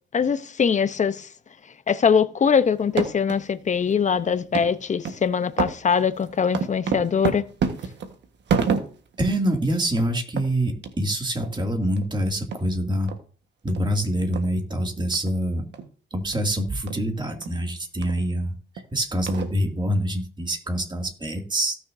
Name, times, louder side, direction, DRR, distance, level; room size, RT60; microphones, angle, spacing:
voice 1, 0.1-1.3 1.9-7.5, left 6 dB, 35° left, 0.8 m, -22 dB
sound 1, 2.8-3.4 3.8-3.9 4.5-4.7 5.0-5.2 5.6-9.2 9.6-9.7 9.9-10.1 10.4-10.5 10.8-10.9 11.4-11.5 12.0-12.1 12.5-12.6 13.1-13.2 13.7-13.8 14.3-14.4 15.1-15.3 15.7-15.9 16.3-16.4 16.9-17.0 17.4-17.5 18.0-18.2 18.8-18.9 19.3-19.8, right 5 dB, 65° right, 1.5 m, -28 dB
voice 2, 9.2-13.1 13.6-15.6 16.1-18.5 18.9-21.8, right 1 dB, 25° right, 2.5 m, -25 dB
17.0 x 6.5 x 2.7 m
cardioid pair, 90°, 20 cm